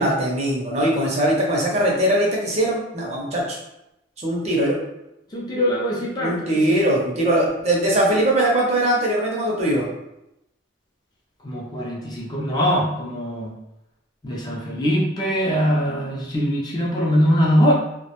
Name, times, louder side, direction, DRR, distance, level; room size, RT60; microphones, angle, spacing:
voice 1, 0.0-3.6 4.2-4.8 6.2-9.9, right 1 dB, 35° right, -3 dB, 0.6 m, -21 dB
voice 2, 5.3-6.8 11.4-13.5 14.2-17.7, equal, 20° left, -4 dB, 0.4 m, -22 dB
2.3 x 2.1 x 2.9 m, 0.88 s
head